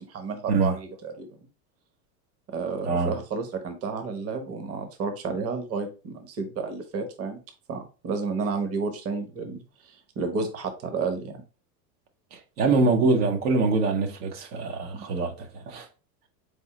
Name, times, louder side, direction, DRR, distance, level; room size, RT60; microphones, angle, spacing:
voice 1, 0.1-1.3 2.5-7.4 7.7-11.3 14.9-15.0, right 4 dB, 30° right, 0.9 m, -31 dB
voice 2, 2.8-3.1 12.3-15.9, right 3 dB, 70° right, 1.1 m, -24 dB
4.1 x 3.6 x 3.0 m
hypercardioid pair, 100°, 49 cm